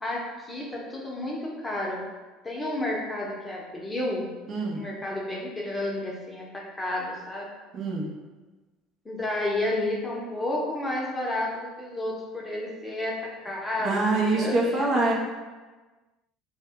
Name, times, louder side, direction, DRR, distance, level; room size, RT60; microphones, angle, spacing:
voice 1, 0.0-2.0 2.4-4.3 4.7-7.5 9.0-15.1, left 1 dB, 15° left, -3 dB, 0.7 m, -31 dB
voice 2, 4.5-4.8 7.7-8.1 13.8-15.1, right 2 dB, 45° right, -3 dB, 0.5 m, -25 dB
2.1 x 2.1 x 3.5 m, 1.3 s
hypercardioid pair, 70°, 0 cm